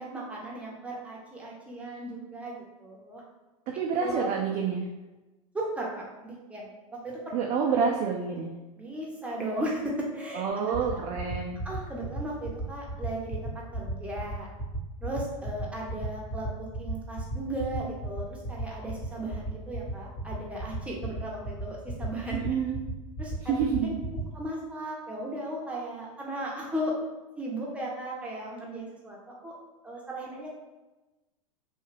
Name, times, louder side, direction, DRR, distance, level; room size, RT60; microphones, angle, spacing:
voice 1, 0.0-3.2 4.0-4.3 5.5-7.3 8.8-10.4 10.9-11.0 11.6-14.5 15.0-22.4 23.2-23.5 23.8-23.9 24.3-26.9 27.4-29.6 29.8-30.6, right 1 dB, 5° right, -3 dB, 0.7 m, -36 dB
voice 2, 3.7-4.9 7.3-8.5 10.3-11.6 22.3-22.8 23.5-24.0, right 6 dB, 35° right, -1 dB, 0.4 m, -28 dB
sound 1, 10.7-24.2, right 1 dB, 30° left, 0.9 m, -34 dB
2.7 x 2.3 x 3.2 m, 1.1 s
hypercardioid pair, 105°, 19 cm